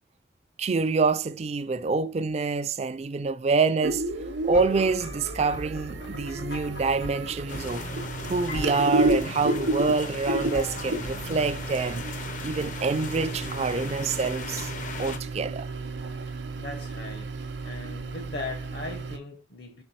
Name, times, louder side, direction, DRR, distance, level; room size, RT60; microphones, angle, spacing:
voice 1, 0.6-4.0 4.4-7.9 8.3-12.1 12.4-14.7 15.0-15.7, right 4 dB, 35° right, 0.3 m, -26 dB
sound 1, 3.8-19.2, right 2 dB, 70° right, 0.8 m, -32 dB
sound 2, 4.5-11.5, left 1 dB, 85° left, 2.6 m, -40 dB
sound 3, 7.5-15.2, left 4 dB, 45° left, 0.6 m, -39 dB
voice 2, 16.5-17.4 17.6-19.8, left 2 dB, 60° left, 0.9 m, -38 dB
5.5 x 4.3 x 4.2 m
head